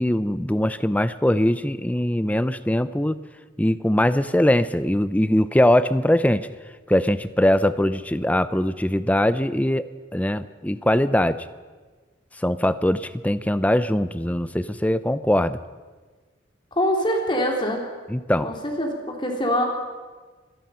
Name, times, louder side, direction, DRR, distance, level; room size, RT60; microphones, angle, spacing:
voice 1, 0.0-3.2 3.6-6.5 6.9-11.4 12.4-15.6 18.1-18.5, left 1 dB, 10° left, 14 dB, 0.6 m, -21 dB
voice 2, 16.7-17.8 18.4-19.7, equal, 25° left, 1 dB, 3.4 m, -24 dB
25.0 x 18.5 x 5.7 m, 1.4 s
head